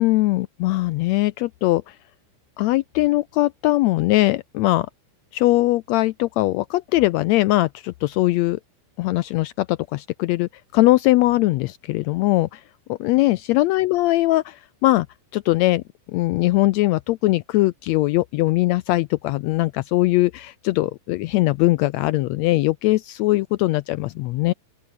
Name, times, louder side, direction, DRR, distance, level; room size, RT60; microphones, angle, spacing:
voice 1, 0.0-1.9 2.6-4.9 5.3-8.6 9.0-12.6 12.9-15.1 15.3-15.8 16.1-24.5, left 18 dB, 90° left, 1.5 m, -20 dB
open air
omnidirectional pair, 3.7 m